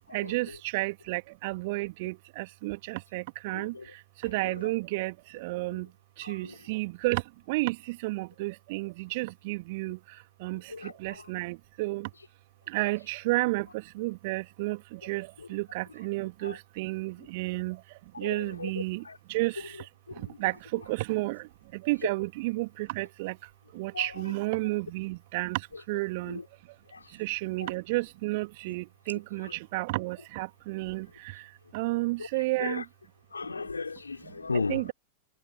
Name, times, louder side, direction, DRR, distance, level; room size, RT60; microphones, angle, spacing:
voice 1, 0.1-3.7 4.2-5.9 6.3-7.2 7.5-10.0 10.4-10.6 11.0-12.1 12.7-13.7 14.0-17.8 18.2-19.0 19.3-19.5 20.4-21.4 21.8-23.3 23.8-25.6 25.9-26.4 27.2-31.1 31.7-32.8 34.7-34.9, right 23 dB, 50° right, 2.3 m, -31 dB
voice 2, 3.5-3.8 6.2-6.5 10.7-11.2 16.4-16.5 18.2-18.7 19.0-19.2 20.2-20.4 23.9-24.0 26.9-27.0 27.6-27.7 32.2-32.3 32.6-32.8 33.3-34.9, left 4 dB, 80° left, 5.1 m, -35 dB
figure-of-eight pair, 90°, 0 cm